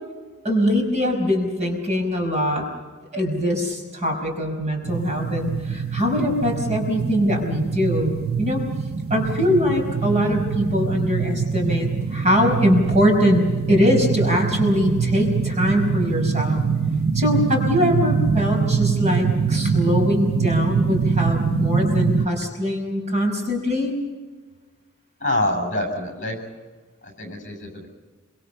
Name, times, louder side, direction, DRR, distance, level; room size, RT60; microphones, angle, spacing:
voice 1, 0.4-2.6 3.1-8.6 9.1-16.6 17.1-23.9, equal, 35° right, 2 dB, 5.2 m, -22 dB
sound 1, 4.8-22.3, right 5 dB, 80° right, 1.0 m, -24 dB
voice 2, 25.2-26.4 27.0-27.9, left 1 dB, 35° left, 4 dB, 7.5 m, -26 dB
26.5 x 25.0 x 5.6 m, 1.3 s
head